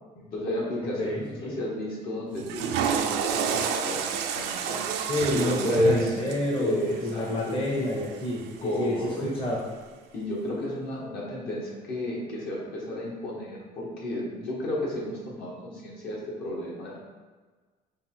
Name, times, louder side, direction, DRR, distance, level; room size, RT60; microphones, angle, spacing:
voice 1, 0.1-4.8 5.3-6.2 6.6-7.6 8.6-9.3 10.1-17.0, left 1 dB, 65° left, -4 dB, 1.4 m, -31 dB
voice 2, 1.0-1.6 5.1-6.8 7.0-9.6, left 1 dB, 30° left, -3 dB, 0.7 m, -29 dB
Water / Toilet flush, 2.3-8.6, right 7 dB, 85° right, 0.4 m, -30 dB
5.4 x 2.4 x 3.5 m, 1.4 s
cardioid pair, 110°, 17 cm